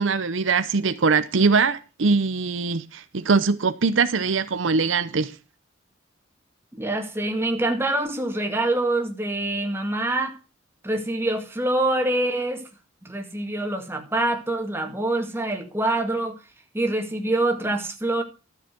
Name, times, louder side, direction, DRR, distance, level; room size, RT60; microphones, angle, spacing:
voice 1, 0.0-5.3, right 4 dB, 75° right, 0.7 m, -22 dB
voice 2, 6.7-10.4 10.8-12.7 13.0-16.4 16.7-18.2, right 2 dB, 15° right, 2.0 m, -25 dB
13.0 x 7.2 x 5.9 m
head